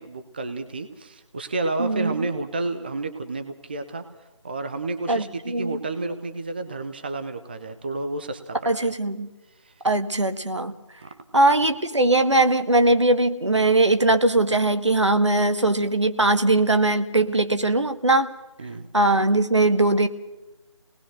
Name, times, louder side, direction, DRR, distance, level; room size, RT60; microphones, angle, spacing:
voice 1, 0.0-4.0 4.4-8.6 8.8-8.9 9.6-9.7 11.0-11.1 18.6-18.9, right 2 dB, 20° right, 8 dB, 0.8 m, -31 dB
voice 2, 1.8-2.2 5.1-5.8 8.7-9.3 9.8-10.7 11.3-18.3 18.9-20.1, right 2 dB, 70° right, 9 dB, 1.7 m, -20 dB
25.0 x 19.5 x 6.5 m, 1.0 s
figure-of-eight pair, 160°, 16 cm